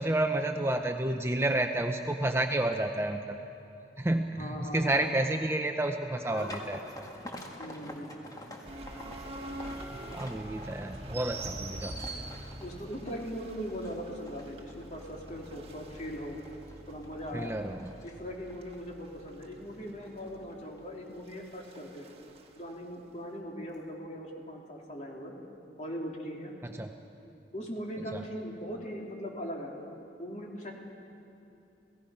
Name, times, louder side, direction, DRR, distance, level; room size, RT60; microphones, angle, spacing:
voice 1, 0.0-3.4 4.0-6.8 10.1-12.0 17.3-18.0 26.6-26.9 28.1-28.2, right 1 dB, 15° right, 5 dB, 0.6 m, -30 dB
voice 2, 4.4-4.9 7.6-8.1 12.6-16.4 16.9-17.5 18.0-22.1 22.5-25.3 25.8-26.5 27.5-29.7 30.2-30.7, equal, 40° left, -1 dB, 3.1 m, -40 dB
sound 1, 6.3-21.4 21.7-22.2 23.0-23.1 23.5-23.7, left 1 dB, 20° left, 1.9 m, -48 dB
sound 2, 8.6-22.5, right 2 dB, 35° right, 1.7 m, -45 dB
30.0 x 17.5 x 5.7 m, 2.8 s
head